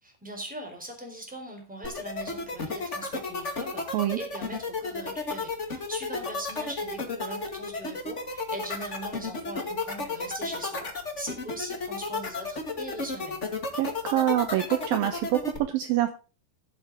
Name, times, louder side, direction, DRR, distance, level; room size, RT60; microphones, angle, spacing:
voice 1, 0.0-10.9 11.2-13.4, right 1 dB, ahead, 2 dB, 3.5 m, -40 dB
sound 1, 1.8-15.6, left 3 dB, 55° left, 0.8 m, -32 dB
voice 2, 13.8-16.1, right 13 dB, 80° right, 9 dB, 2.1 m, -25 dB
15.5 x 8.0 x 3.8 m, 0.34 s
omnidirectional pair, 5.3 m